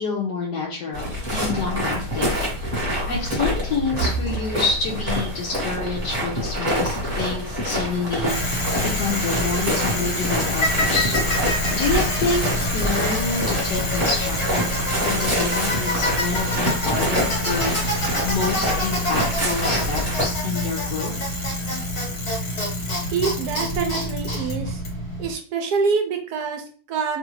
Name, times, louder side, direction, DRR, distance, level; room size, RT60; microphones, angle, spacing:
voice 1, 0.0-2.7 3.1-11.1 11.5-21.2, left 4 dB, 85° left, -4 dB, 1.4 m, -28 dB
sound 1, 0.9-20.3, equal, 25° right, 1.2 m, -26 dB
Bicycle, 8.3-25.3, left 1 dB, 65° left, 1.8 m, -26 dB
voice 2, 23.1-24.8 25.2-27.2, right 5 dB, 75° right, 4 dB, 1.2 m, -25 dB
3.3 x 2.4 x 3.0 m, 0.40 s
omnidirectional pair, 1.8 m